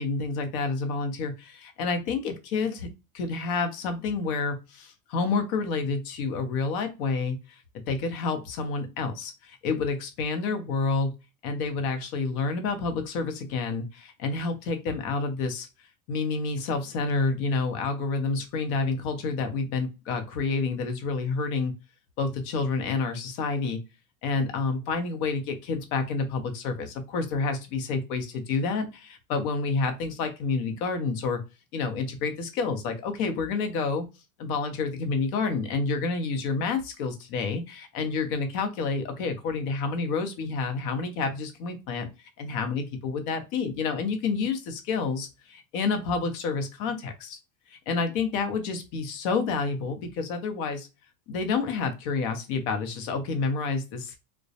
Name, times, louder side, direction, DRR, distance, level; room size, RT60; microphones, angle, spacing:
voice 1, 0.0-2.9 3.1-7.6 7.9-11.1 11.4-15.7 16.1-21.7 22.2-23.8 24.2-31.4 31.7-34.0 34.4-42.1 42.4-47.4 47.7-50.9 51.3-54.1, left 4 dB, 65° left, 7 dB, 0.8 m, -29 dB
2.2 x 2.0 x 2.7 m, 0.27 s
supercardioid pair, 110°, 46 cm